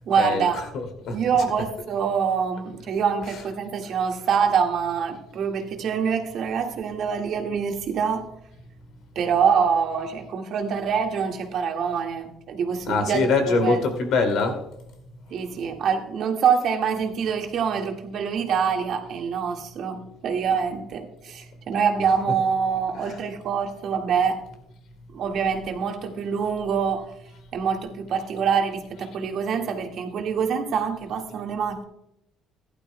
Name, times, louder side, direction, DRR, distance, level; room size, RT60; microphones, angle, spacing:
voice 1, 0.1-0.6 1.1-8.3 9.2-13.8 15.3-24.4 25.1-27.1 27.5-31.8, right 6 dB, 60° right, 3 dB, 1.8 m, -25 dB
voice 2, 0.7-1.2 12.9-14.6 23.0-23.1, left 3 dB, 70° left, 6 dB, 2.4 m, -23 dB
15.0 x 11.5 x 2.2 m, 0.81 s
cardioid pair, 95°, 0 cm